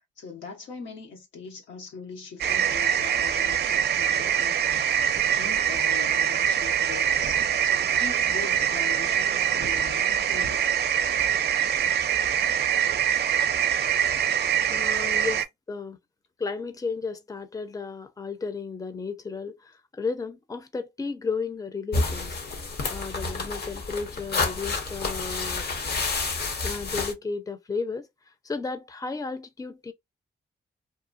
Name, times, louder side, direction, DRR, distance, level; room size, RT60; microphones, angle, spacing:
voice 1, 0.2-4.9 5.4-10.6 14.0-14.4, left 6 dB, 85° left, 0.9 m, -41 dB
sound 1, 2.4-15.4, right 9 dB, 60° right, 0.4 m, -24 dB
voice 2, 14.7-16.0 16.4-22.4 22.9-25.7 26.6-28.1 28.4-29.9, left 4 dB, 20° left, 0.6 m, -33 dB
sound 2, 21.9-27.1, left 3 dB, 60° left, 0.8 m, -29 dB
2.9 x 2.2 x 2.5 m
supercardioid pair, 50°, 19 cm